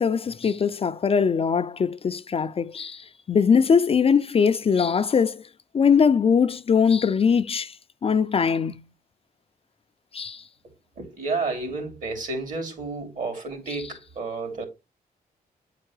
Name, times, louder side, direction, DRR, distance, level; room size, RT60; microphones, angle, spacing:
voice 1, 0.0-5.4 5.7-7.8 8.0-8.8 10.1-10.4 13.7-13.8, left 6 dB, 40° left, 0.4 m, -21 dB
voice 2, 11.0-14.7, right 3 dB, 55° right, 3.1 m, -31 dB
8.5 x 4.5 x 3.2 m
cardioid pair, 80°, 16 cm